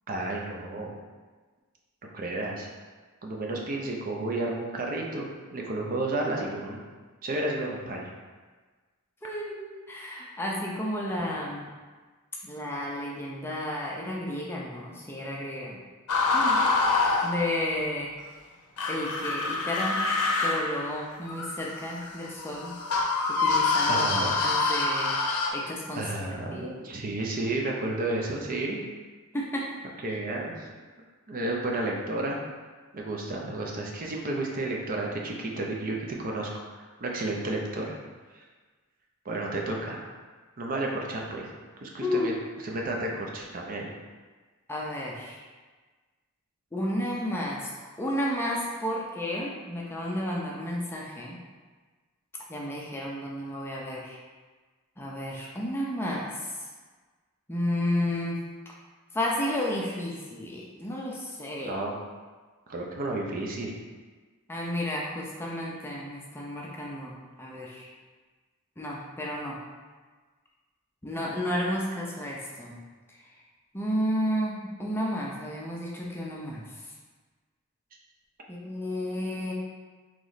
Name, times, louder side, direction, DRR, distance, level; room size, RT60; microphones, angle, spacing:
voice 1, 0.1-1.0 2.0-2.7 3.2-5.2 5.5-6.8 7.2-8.1 23.9-24.4 26.0-28.8 30.0-30.7 31.3-32.4 32.9-36.5 36.7-37.9 39.3-40.1 40.6-41.5 41.8-42.3 42.6-43.9 61.6-62.0 62.7-63.7, right 2 dB, 40° right, -1 dB, 0.5 m, -32 dB
voice 2, 9.2-11.7 12.4-15.8 16.3-16.6 17.2-18.1 18.9-20.0 20.4-22.7 23.3-24.1 24.4-25.2 25.5-26.8 29.3-29.7 30.1-30.2 42.0-42.3 44.7-45.4 46.7-51.4 52.5-54.2 55.0-56.5 57.5-58.4 59.1-61.8 64.5-67.9 68.8-69.6 71.0-72.8 73.7-76.6 78.5-79.5, left 1 dB, 10° left, -3 dB, 0.5 m, -32 dB
sound 1, 16.1-17.8 18.8-25.5, left 3 dB, 85° left, 0.6 m, -26 dB
3.1 x 3.0 x 3.9 m, 1.4 s
head